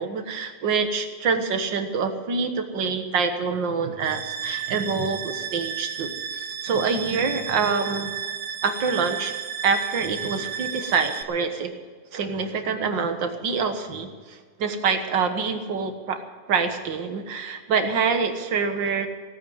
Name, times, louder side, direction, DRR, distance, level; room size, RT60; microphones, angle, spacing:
voice 1, 0.0-8.1 8.6-9.3 9.6-11.7 12.1-16.2 16.5-19.1, right 5 dB, 90° right, 7 dB, 2.1 m, -26 dB
sound 1, 4.0-11.2, right 7 dB, 55° right, 1.1 m, -33 dB
17.0 x 9.2 x 7.8 m, 1.5 s
omnidirectional pair, 1.9 m